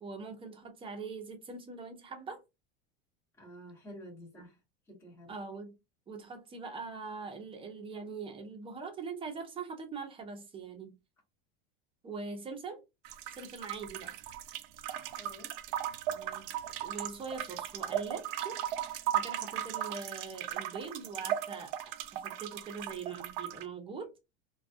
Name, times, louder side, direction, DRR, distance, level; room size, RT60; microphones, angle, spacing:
voice 1, 0.0-2.4 5.3-5.7 6.1-10.9 12.0-12.8 13.3-14.2 16.1-18.6 19.1-24.1, right 4 dB, 20° right, 0.7 m, -42 dB
voice 2, 3.4-4.6 4.9-5.3 15.2-15.5, equal, 10° left, 1.1 m, -49 dB
sound 1, 13.0-23.6, right 11 dB, 70° right, 0.4 m, -37 dB
2.3 x 2.3 x 2.6 m
supercardioid pair, 135°, 29 cm